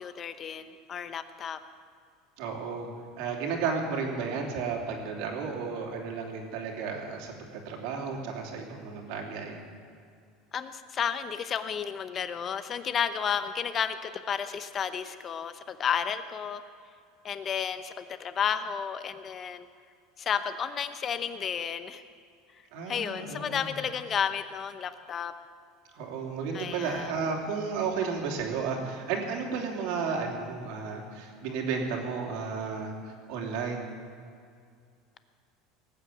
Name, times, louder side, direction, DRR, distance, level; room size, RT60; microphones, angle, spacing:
voice 1, 0.0-1.6 10.5-16.6 17.2-19.7 20.2-22.0 22.9-25.3 26.5-27.1, left 7 dB, 30° left, 11 dB, 0.8 m, -32 dB
voice 2, 2.4-2.9 3.2-7.3 7.6-9.6 22.7-23.7 25.9-33.8, right 5 dB, 70° right, 1 dB, 3.0 m, -33 dB
19.5 x 9.2 x 7.1 m, 2.3 s
supercardioid pair, 150°, 0 cm